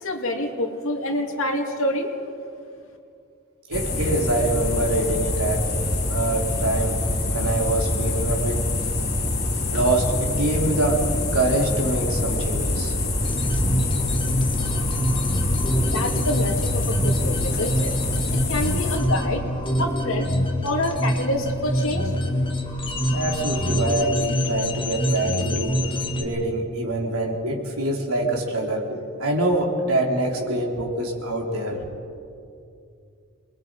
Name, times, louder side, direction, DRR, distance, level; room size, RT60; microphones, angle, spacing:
voice 1, 0.0-2.1 15.8-17.9 18.3-19.4 19.8-20.3 20.6-22.1, left 1 dB, 65° left, 2 dB, 2.6 m, -27 dB
sound 1, 3.7-19.0, left 2 dB, 50° left, 4.4 m, -25 dB
voice 2, 3.7-5.7 6.1-7.0 7.3-8.6 9.7-12.9 23.1-31.8, right 2 dB, 80° right, 0 dB, 3.6 m, -25 dB
sound 2, 13.2-26.2, equal, 25° left, 1.8 m, -25 dB
28.0 x 21.5 x 4.9 m, 2.5 s
head